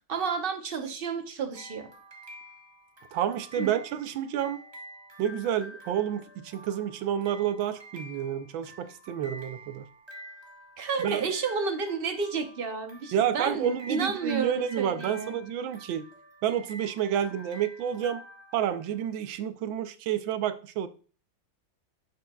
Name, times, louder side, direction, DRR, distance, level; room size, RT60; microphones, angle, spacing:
voice 1, 0.1-1.9 3.6-3.7 10.8-15.4, right 5 dB, 50° right, 0.7 m, -31 dB
sound 1, 1.5-19.2, equal, 15° right, 1.3 m, -48 dB
voice 2, 3.1-4.6 5.2-9.8 11.0-11.3 13.1-16.0 16.4-18.2 18.5-20.9, right 9 dB, 85° right, 1.4 m, -29 dB
7.7 x 6.9 x 2.3 m
omnidirectional pair, 2.1 m